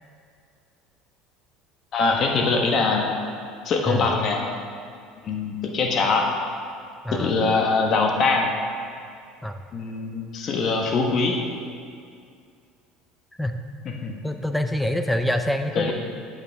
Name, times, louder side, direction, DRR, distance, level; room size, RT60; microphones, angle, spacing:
voice 1, 1.9-3.1 3.6-4.4 5.2-6.2 7.2-8.5 9.7-11.4 13.8-14.1 15.7-15.9, left 4 dB, 50° left, 1 dB, 1.4 m, -22 dB
voice 2, 7.0-7.4 9.4-9.6 13.4-13.6 14.2-15.9, left 1 dB, 5° left, 7 dB, 0.6 m, -25 dB
9.1 x 8.4 x 3.5 m, 2.3 s
supercardioid pair, 85°, 0 cm